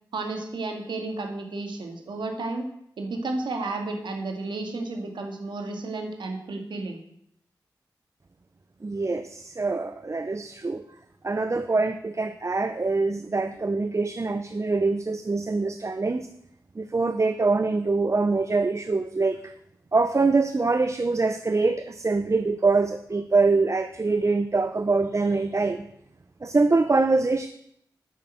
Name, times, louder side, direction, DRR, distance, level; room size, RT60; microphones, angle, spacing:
voice 1, 0.1-2.7 3.0-7.0, right 3 dB, 80° right, 4 dB, 2.0 m, -32 dB
voice 2, 8.8-10.8 11.2-16.3 16.7-19.5 19.9-25.9 26.4-27.5, right 3 dB, 40° right, 10 dB, 0.7 m, -24 dB
9.0 x 6.7 x 7.8 m, 0.73 s
cardioid pair, 40°, 8 cm